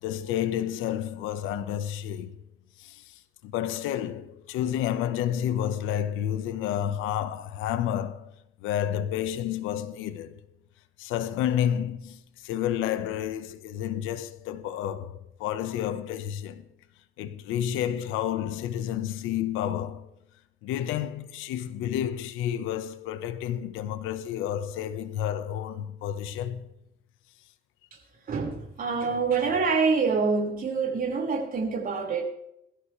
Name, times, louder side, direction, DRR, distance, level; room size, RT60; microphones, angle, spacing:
voice 1, 0.0-2.3 2.8-8.3 8.6-10.4 11.0-16.6 17.2-20.1 20.6-26.7, left 10 dB, 85° left, 1.3 m, -30 dB
voice 2, 28.3-32.2, right 4 dB, 45° right, 5.2 m, -26 dB
22.0 x 14.0 x 3.4 m
cardioid pair, 110°, 20 cm